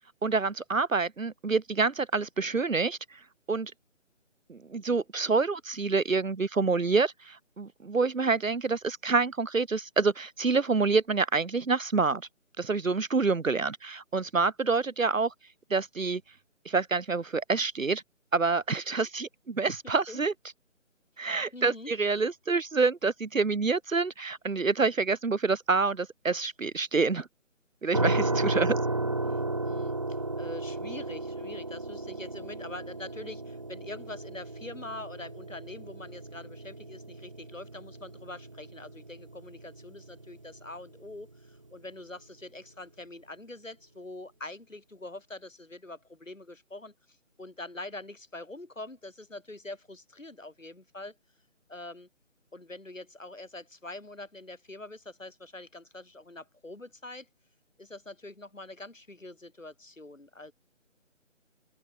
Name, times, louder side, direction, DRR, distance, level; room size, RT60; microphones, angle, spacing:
voice 1, 0.2-3.2 3.5-3.7 4.5-12.2 12.6-15.3 15.7-16.2 16.6-18.0 18.3-20.3 21.2-27.3 27.8-28.8, right 4 dB, 85° right, 1.1 m, -27 dB
voice 2, 21.5-21.9 29.3-51.2 51.7-52.1 52.5-57.3 57.8-60.5, left 2 dB, 75° left, 7.2 m, -44 dB
sound 1, 27.9-40.8, right 2 dB, 25° right, 0.7 m, -34 dB
open air
figure-of-eight pair, 155°, 39 cm